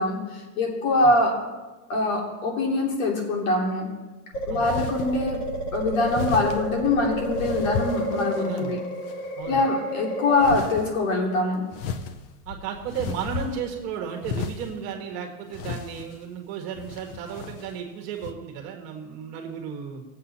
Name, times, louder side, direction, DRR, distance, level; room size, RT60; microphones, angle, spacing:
voice 1, 0.0-1.4 1.9-3.9 4.5-5.4 5.7-8.8 9.5-11.6, left 2 dB, 60° left, 0 dB, 3.1 m, -23 dB
sound 1, 4.3-10.5, equal, 85° left, 1.8 m, -31 dB
sound 2, 4.6-5.1 6.1-6.6 7.4-8.6 9.1-9.6 10.4-10.9 11.7-13.8 14.2-14.8 15.5-16.2 16.8-17.7 18.2-18.3, left 5 dB, 40° left, 0.8 m, -33 dB
voice 2, 8.3-8.7 9.3-9.6 12.4-20.0, right 7 dB, 35° right, 3 dB, 1.6 m, -34 dB
19.0 x 7.9 x 4.2 m, 1.2 s
supercardioid pair, 165°, 45 cm